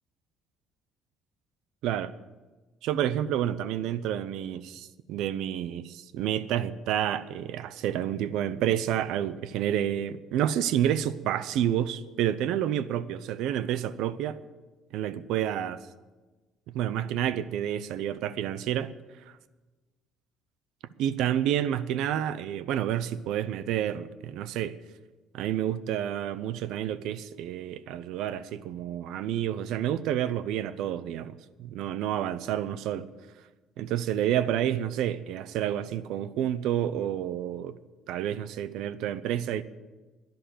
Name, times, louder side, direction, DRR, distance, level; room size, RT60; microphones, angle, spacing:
voice 1, 1.8-2.1 2.8-14.4 14.9-15.8 16.7-18.9 19.3-19.4 21.0-24.8 25.3-33.1 33.8-37.8 38.1-39.6, right 10 dB, 70° right, 0.7 m, -29 dB
11.5 x 10.5 x 9.2 m
cardioid pair, 170°, 0 cm